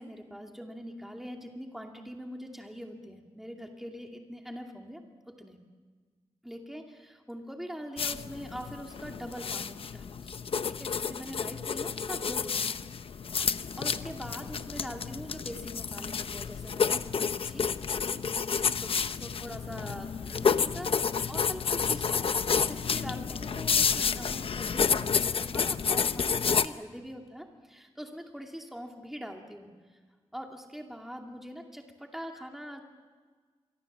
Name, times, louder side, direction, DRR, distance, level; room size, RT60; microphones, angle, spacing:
voice 1, 0.0-5.6 6.4-10.4 10.8-12.8 13.6-18.2 18.6-30.0 30.3-32.8, equal, 5° right, 2 dB, 2.5 m, -43 dB
sound 1, 8.0-26.7, left 6 dB, 60° left, 0.8 m, -30 dB
28.5 x 23.5 x 7.4 m, 1.5 s
wide cardioid pair, 155°, 11 cm